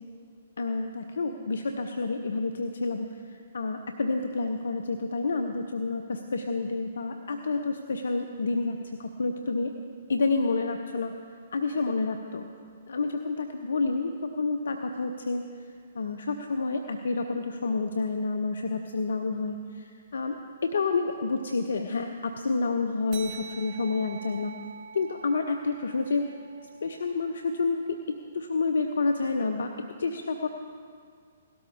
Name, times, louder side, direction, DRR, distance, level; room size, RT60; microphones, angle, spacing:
voice 1, 0.6-3.2 3.5-9.7 10.1-11.1 11.5-12.4 12.9-15.5 15.9-24.6 24.9-26.3 26.8-29.7 30.0-30.5, left 3 dB, 70° left, 5 dB, 0.6 m, -29 dB
sound 1, 23.1-28.0, right 5 dB, 30° right, 1.3 m, -46 dB
17.5 x 13.0 x 3.6 m, 2.1 s
figure-of-eight pair, 125°, 0 cm